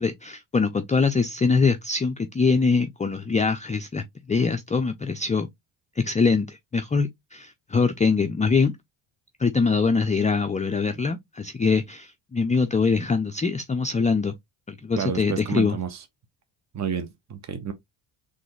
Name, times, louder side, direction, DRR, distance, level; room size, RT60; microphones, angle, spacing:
voice 1, 0.0-5.5 6.0-8.8 9.4-14.3 14.7-15.8, left 4 dB, 15° left, 0.4 m, -23 dB
voice 2, 15.0-16.0 16.7-17.7, right 7 dB, 35° right, 0.9 m, -30 dB
3.9 x 3.3 x 3.1 m
cardioid pair, 95°, 47 cm